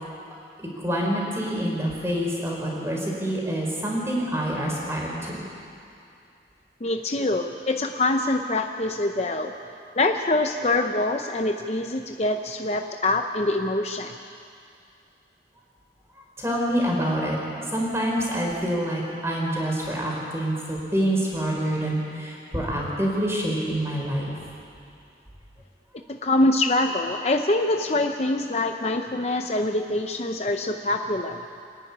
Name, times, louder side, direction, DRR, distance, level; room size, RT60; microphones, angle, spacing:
voice 1, 0.6-5.4 16.4-17.4 17.7-24.3, equal, 15° right, -2 dB, 4.3 m, -26 dB
voice 2, 6.8-9.5 10.0-14.2 26.1-31.4, left 2 dB, 35° left, 5 dB, 0.7 m, -24 dB
27.0 x 10.0 x 9.7 m, 2.5 s
head